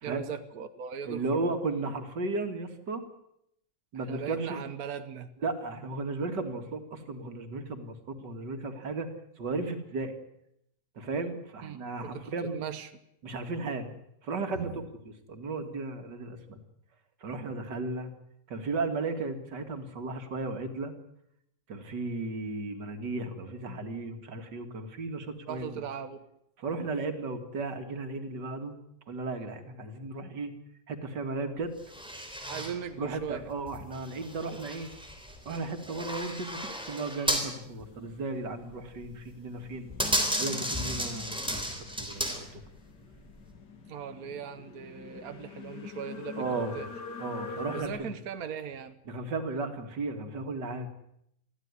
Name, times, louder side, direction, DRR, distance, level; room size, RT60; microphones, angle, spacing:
voice 1, 0.0-1.6 3.9-5.4 11.6-11.8 12.0-12.9 14.5-14.7 25.5-26.2 32.5-33.5 43.9-46.9 47.7-49.0, right 7 dB, 60° right, 9 dB, 1.6 m, -39 dB
voice 2, 1.1-3.0 3.9-4.6 5.4-9.1 9.4-10.2 11.0-12.6 13.2-13.9 14.2-14.7 15.3-16.6 17.2-18.1 18.5-20.9 21.7-25.7 26.6-28.7 29.1-30.5 30.9-31.7 33.0-34.9 35.5-39.9 40.4-41.6 42.0-42.6 46.4-46.7 47.2-48.1 49.1-50.9, right 3 dB, 90° right, 7 dB, 2.6 m, -35 dB
sound 1, 31.8-32.7 33.3-37.5 37.8-37.9 38.7-39.1 39.6-42.7 43.3-43.5, equal, 5° right, 3.7 m, -34 dB
sound 2, 37.5-47.9, left 4 dB, 80° left, 2.7 m, -45 dB
23.5 x 15.0 x 9.6 m, 0.77 s
omnidirectional pair, 1.8 m